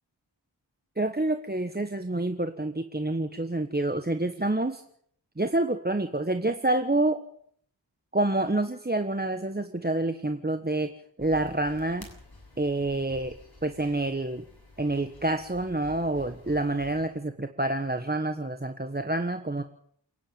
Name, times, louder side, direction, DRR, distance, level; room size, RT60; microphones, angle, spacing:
voice 1, 1.0-4.8 5.4-7.2 8.1-10.9 11.2-12.1 12.6-13.3 13.6-14.4 14.8-19.6, right 2 dB, 20° right, 8 dB, 1.3 m, -28 dB
sound 1, 11.2-17.1, left 2 dB, 50° left, 7.6 m, -50 dB
28.5 x 10.0 x 9.0 m, 0.65 s
wide cardioid pair, 50°, 46 cm